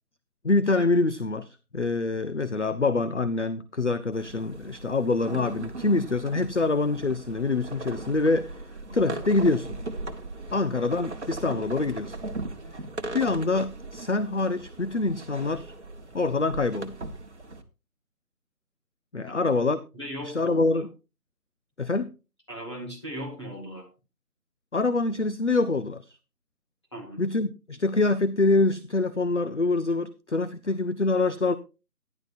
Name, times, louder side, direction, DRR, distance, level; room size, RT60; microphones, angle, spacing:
voice 1, 0.4-8.6 8.9-9.8 10.5-12.2 13.1-15.7 16.1-17.0 19.1-19.8 20.2-20.9 21.8-22.1 24.7-26.2 27.2-31.5, left 3 dB, 50° left, 13 dB, 0.6 m, -25 dB
sound 1, 4.1-17.6, right 2 dB, 45° right, 1.3 m, -38 dB
voice 2, 19.3-20.8 22.5-23.9 26.9-27.2, equal, 15° left, -3 dB, 2.2 m, -39 dB
14.5 x 11.0 x 2.6 m, 0.29 s
figure-of-eight pair, 175°, 48 cm